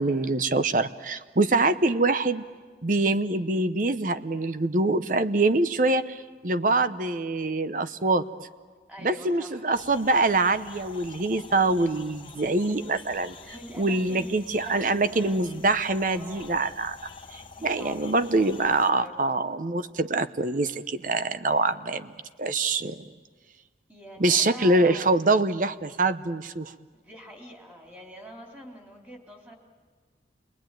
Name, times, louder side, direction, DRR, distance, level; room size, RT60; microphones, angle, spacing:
voice 1, 0.0-2.4 2.8-8.2 9.0-13.3 13.8-16.9 17.3-22.1 22.4-22.9 24.2-26.7, right 2 dB, 45° right, 12 dB, 0.8 m, -24 dB
voice 2, 8.9-9.7 13.4-15.4 16.1-16.7 17.4-19.2 23.9-25.1 27.0-29.5, equal, 10° right, 0 dB, 3.6 m, -45 dB
sound 1, 9.7-18.9, left 5 dB, 30° left, 1.1 m, -47 dB
28.5 x 22.5 x 9.2 m, 1.5 s
head